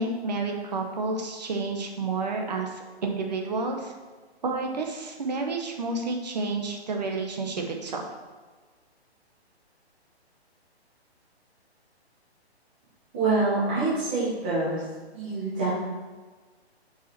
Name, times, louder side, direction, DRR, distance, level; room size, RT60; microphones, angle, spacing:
voice 1, 0.0-3.9 4.4-8.1, right 3 dB, 40° right, 2 dB, 1.0 m, -30 dB
voice 2, 13.1-14.8 15.1-15.7, right 3 dB, 10° right, -10 dB, 0.6 m, -26 dB
5.5 x 5.1 x 5.8 m, 1.4 s
hypercardioid pair, 175°, 33 cm